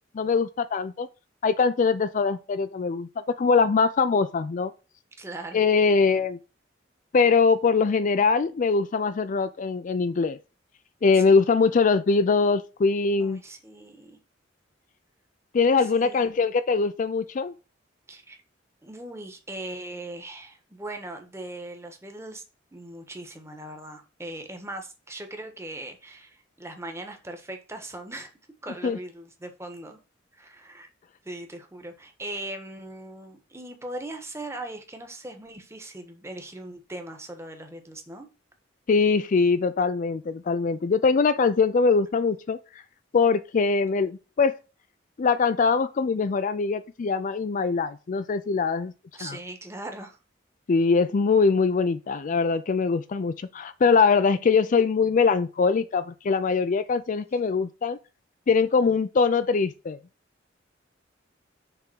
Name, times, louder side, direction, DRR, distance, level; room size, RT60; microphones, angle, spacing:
voice 1, 0.1-1.1 1.4-4.7 5.5-6.4 7.1-10.4 11.0-13.4 15.5-17.5 28.8-29.0 38.9-42.6 43.1-44.5 45.2-48.9 49.2-49.4 50.7-58.0 58.5-60.0, left 4 dB, 45° left, 0.4 m, -22 dB
voice 2, 5.2-5.6 11.1-11.3 13.2-14.2 15.9-16.3 18.1-18.4 18.8-22.4 22.7-28.3 28.6-30.0 30.3-30.9 31.2-38.3 49.1-50.2, right 1 dB, 15° right, 1.2 m, -39 dB
6.7 x 3.6 x 6.1 m
head